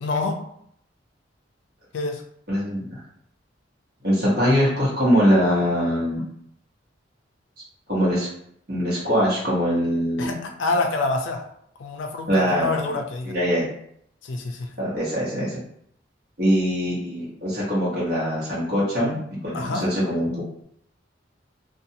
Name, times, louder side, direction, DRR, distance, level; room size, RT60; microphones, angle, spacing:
voice 1, 0.0-0.4 1.9-2.2 10.2-11.5 11.8-13.4 14.2-14.7 19.5-19.9, left 3 dB, 75° left, 3 dB, 0.4 m, -27 dB
voice 2, 2.5-3.0 4.0-6.2 7.9-8.3 8.7-10.3 12.3-12.7 13.2-13.7 14.8-15.6 16.4-19.2 19.4-20.3, equal, 55° right, -7 dB, 1.2 m, -22 dB
2.6 x 2.3 x 2.7 m, 0.69 s
head